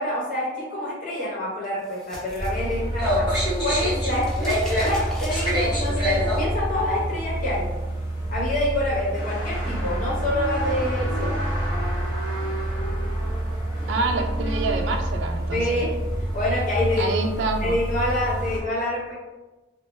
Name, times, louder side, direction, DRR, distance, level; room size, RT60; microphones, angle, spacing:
voice 1, 0.0-3.3 3.6-7.6 8.3-11.4 15.5-15.9 16.3-17.1 17.6-19.1, left 1 dB, 45° left, -7 dB, 0.9 m, -27 dB
sound 1, 1.6-3.3 3.6-6.1, equal, ahead, 0.4 m, -40 dB
sound 2, 2.4-18.6, right 1 dB, 20° left, 0.9 m, -26 dB
voice 2, 13.9-15.8 17.0-17.8, right 3 dB, 80° right, 4 dB, 0.3 m, -27 dB
2.1 x 2.0 x 3.0 m, 1.1 s
head